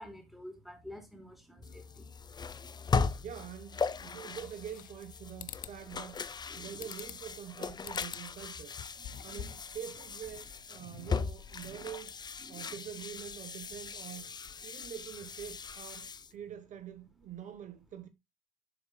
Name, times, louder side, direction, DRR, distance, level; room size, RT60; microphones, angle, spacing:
voice 1, 0.0-2.1 2.8-3.3 5.9-6.0 6.5-6.9 9.0-9.5 10.8-11.0 11.6-11.8 12.4-12.7 14.7-14.8, left 1 dB, ahead, 3.3 m, -51 dB
sound 1, 1.6-16.3, left 5 dB, 25° left, 0.6 m, -38 dB
voice 2, 3.2-6.2 6.5-8.7 9.2-12.1 12.5-14.3 14.6-18.1, right 9 dB, 50° right, 1.0 m, -45 dB
sound 2, 4.4-5.1 5.4-5.8 6.8-7.3 7.8-8.3 8.7-9.7, left 10 dB, 60° left, 0.8 m, -45 dB
11.0 x 4.8 x 2.2 m
supercardioid pair, 75°, 16 cm